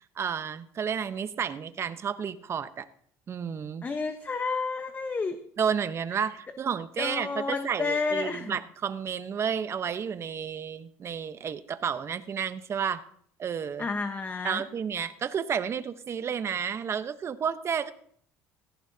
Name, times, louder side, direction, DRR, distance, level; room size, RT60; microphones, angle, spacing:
voice 1, 0.0-2.9 3.3-3.9 5.6-13.0 13.4-13.9 14.4-17.9, right 7 dB, 40° right, 12 dB, 1.0 m, -31 dB
voice 2, 3.8-5.4 6.1-6.2 7.0-8.6 13.8-14.6, left 4 dB, 25° left, 7 dB, 1.1 m, -31 dB
17.5 x 14.5 x 2.8 m, 0.63 s
supercardioid pair, 80°, 7 cm